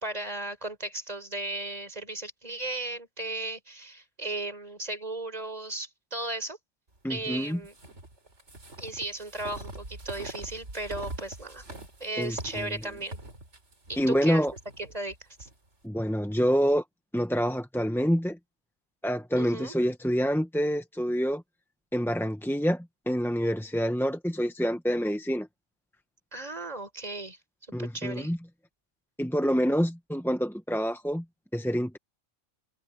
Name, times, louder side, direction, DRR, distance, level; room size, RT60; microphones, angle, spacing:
voice 1, 0.0-6.6 7.1-7.7 8.8-11.6 12.0-13.2 13.9-14.5 14.8-15.5 19.4-19.7 26.3-27.4 27.8-28.3, right 2 dB, 30° right, 4.7 m, -36 dB
voice 2, 7.0-7.6 12.2-12.7 14.0-14.5 15.8-16.8 17.1-18.4 19.0-21.4 21.9-25.5 27.7-28.4 29.2-31.2 31.5-32.0, equal, ahead, 0.7 m, -27 dB
sound 1, 7.6-15.5, right 2 dB, 65° right, 4.6 m, -43 dB
omnidirectional pair, 1.3 m